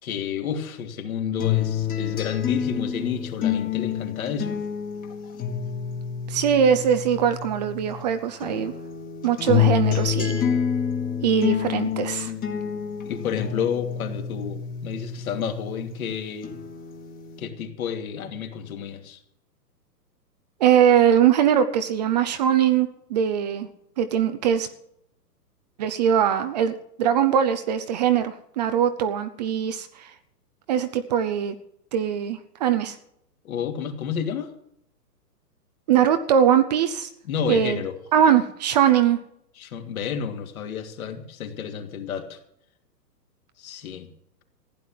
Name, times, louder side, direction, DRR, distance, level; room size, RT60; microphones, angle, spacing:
voice 1, 0.0-4.6 13.0-16.6 17.4-19.2 33.4-34.5 37.2-38.0 39.6-42.4 43.6-44.1, left 7 dB, 55° left, 5 dB, 2.7 m, -30 dB
sound 1, 1.4-8.0 8.4-16.0 16.4-17.4, left 9 dB, 15° left, 1.6 m, -28 dB
voice 2, 6.3-8.7 9.2-10.4 11.2-12.3 20.6-23.7 24.0-24.7 25.8-30.1 30.7-31.5 31.9-33.0 35.9-37.1 37.5-37.8 38.1-39.2, right 9 dB, 25° right, 9 dB, 0.7 m, -21 dB
15.5 x 9.9 x 7.5 m, 0.75 s
hypercardioid pair, 140°, 49 cm